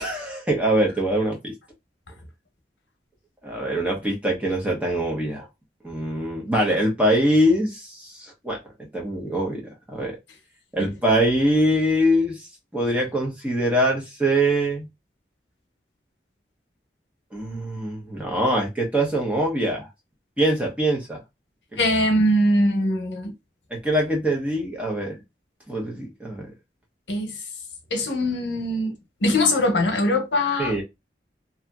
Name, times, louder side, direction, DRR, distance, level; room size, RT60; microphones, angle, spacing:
voice 1, 0.0-1.5 3.4-5.5 5.8-8.6 8.9-9.6 9.9-10.2 10.7-12.4 12.7-14.9 17.3-19.9 20.4-21.2 21.7-21.8 23.7-25.2 25.7-26.5 30.6-30.8, right 1 dB, 10° right, 0.7 m, -23 dB
voice 2, 21.8-23.3 27.1-27.4 27.9-28.9 29.2-30.8, left 1 dB, 90° left, 0.8 m, -22 dB
2.8 x 2.6 x 2.3 m
head